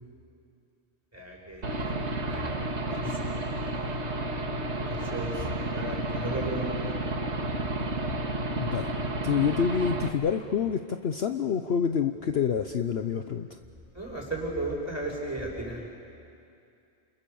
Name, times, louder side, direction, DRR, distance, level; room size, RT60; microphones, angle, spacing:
voice 1, 1.1-2.0 2.2-3.4 4.7-6.9 13.9-15.9, right 1 dB, 10° right, -2 dB, 6.2 m, -35 dB
Aircraft / Engine, 1.6-10.1, right 1 dB, 60° right, 2.1 m, -31 dB
voice 2, 8.6-9.0 9.2-13.6, left 7 dB, 55° left, 7 dB, 1.0 m, -27 dB
28.5 x 28.5 x 7.1 m, 2.5 s
omnidirectional pair, 1.3 m